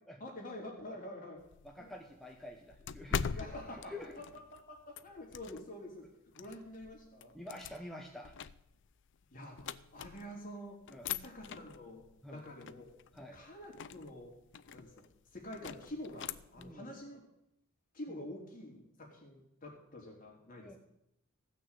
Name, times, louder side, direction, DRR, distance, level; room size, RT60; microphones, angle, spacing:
voice 1, 0.2-1.4 1.7-1.9 3.3-6.1 6.3-7.4 9.3-10.8 11.1-12.9 13.3-14.3 14.7-15.0 15.3-17.2 17.9-20.8, left 1 dB, 40° left, 0 dB, 3.4 m, -47 dB
sound 1, 1.4-5.9 6.4-10.5 10.9-16.7, left 6 dB, 60° left, 0.5 m, -44 dB
voice 2, 1.6-3.3 3.7-4.2 7.3-8.3 10.9-11.1 12.2-12.4 13.1-13.4 16.6-16.9 18.1-18.3 20.6-20.8, left 1 dB, ahead, 0 dB, 1.0 m, -48 dB
15.5 x 6.5 x 8.2 m, 0.81 s
head